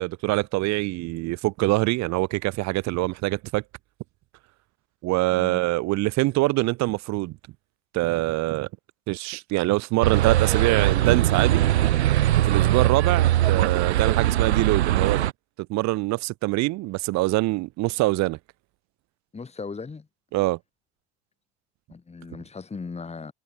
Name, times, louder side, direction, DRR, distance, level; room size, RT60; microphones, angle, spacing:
voice 1, 0.0-3.6 5.0-7.4 7.9-8.7 9.1-11.6 12.4-15.2 15.7-18.4 20.3-20.6, right 20 dB, 55° right, 2.7 m, -24 dB
voice 2, 5.3-5.6 19.3-20.1 21.9-23.3, left 4 dB, 20° left, 5.6 m, -37 dB
sound 1, 10.0-15.3, right 13 dB, 90° right, 2.0 m, -21 dB
hypercardioid pair, 90°, 32 cm